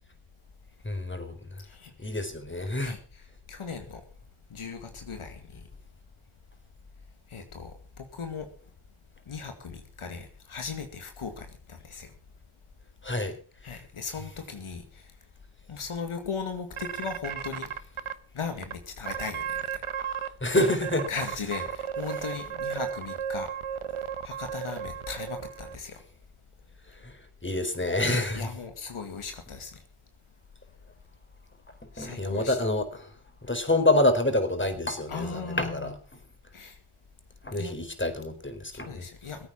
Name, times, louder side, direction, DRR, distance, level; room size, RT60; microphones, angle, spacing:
voice 1, 0.8-1.6 2.0-2.9 13.0-13.4 20.4-21.1 27.0-27.1 27.4-28.5 32.0-33.0 33.4-35.9 37.4-39.1, left 2 dB, 25° left, 7 dB, 4.3 m, -27 dB
voice 2, 1.6-2.2 2.8-3.2 3.5-4.0 4.5-5.7 7.3-8.5 9.3-12.1 13.6-15.1 15.7-17.7 18.3-19.8 21.1-23.5 24.2-26.0 28.0-29.8 31.9-32.6 35.1-35.9 36.5-36.8 37.6-37.7 38.7-39.5, left 5 dB, 75° left, 6 dB, 2.2 m, -38 dB
sound 1, 16.8-18.1 18.6-18.7 19.1-20.3 20.6-25.8, right 8 dB, 75° right, 1.3 m, -34 dB
21.0 x 8.9 x 5.6 m, 0.39 s
cardioid pair, 40°, 50 cm